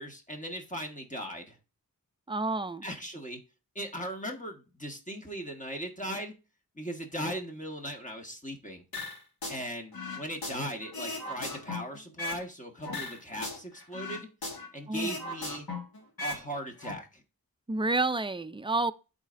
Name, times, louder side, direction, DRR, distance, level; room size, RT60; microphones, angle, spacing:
voice 1, 0.0-1.6 2.8-3.4 3.7-6.3 6.7-8.8 9.5-14.3 14.7-15.7 16.2-17.2, equal, 20° left, 1.5 m, -38 dB
voice 2, 2.3-2.9 14.9-15.2 17.7-18.9, right 2 dB, 15° right, 0.4 m, -29 dB
sound 1, 8.9-9.6 9.9-12.5 12.8-14.7 14.9-16.4 16.7-16.9, left 2 dB, 85° left, 1.8 m, -37 dB
12.0 x 4.2 x 2.6 m
wide cardioid pair, 70°, 35 cm